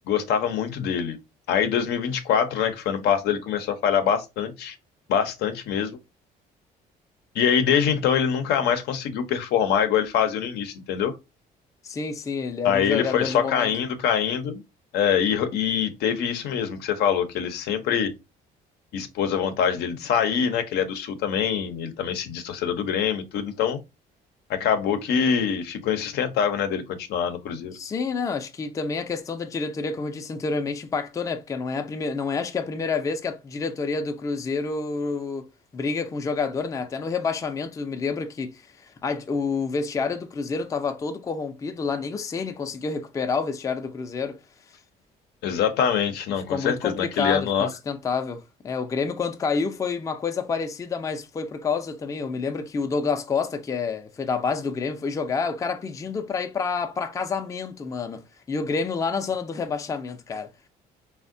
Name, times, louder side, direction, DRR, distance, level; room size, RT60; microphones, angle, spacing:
voice 1, 0.1-1.2 1.5-4.8 5.1-6.0 7.3-11.1 12.6-14.6 14.9-18.1 18.9-23.8 24.5-27.7 45.4-47.7, left 8 dB, 75° left, 0.6 m, -24 dB
voice 2, 11.8-13.7 27.7-44.4 46.5-60.5, left 5 dB, 20° left, 0.4 m, -28 dB
3.4 x 2.1 x 2.5 m
cardioid pair, 110°, 17 cm